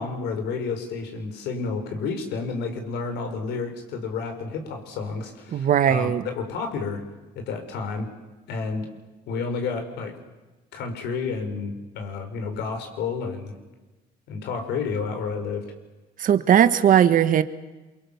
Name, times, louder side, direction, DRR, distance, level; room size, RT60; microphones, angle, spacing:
voice 1, 0.0-7.0 7.4-8.1 8.5-8.9 9.3-10.1 10.7-13.5 14.3-15.6, left 4 dB, 80° left, 5 dB, 5.5 m, -30 dB
voice 2, 5.5-6.2 16.2-17.4, right 9 dB, 55° right, 12 dB, 1.5 m, -18 dB
27.0 x 24.0 x 7.3 m, 1.1 s
cardioid pair, 110°, 17 cm